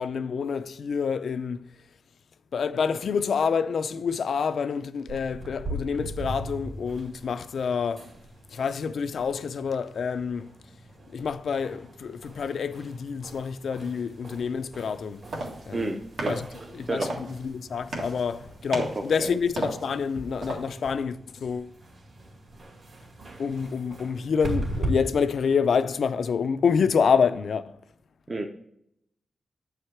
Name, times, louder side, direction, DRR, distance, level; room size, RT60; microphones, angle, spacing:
voice 1, 0.0-1.7 2.5-8.1 8.5-10.5 11.1-15.2 15.7-16.0 16.3-16.4 16.8-21.7 23.4-27.7, left 6 dB, 65° left, 0.4 m, -27 dB
sound 1, 5.1-24.9, right 2 dB, 55° right, 2.4 m, -40 dB
sound 2, 14.9-21.0, right 2 dB, 75° right, 1.7 m, -37 dB
voice 2, 15.7-16.5 16.9-17.2 18.8-19.4 28.3-28.5, right 2 dB, 25° right, 0.5 m, -31 dB
8.6 x 4.8 x 4.3 m
wide cardioid pair, 170°, 0 cm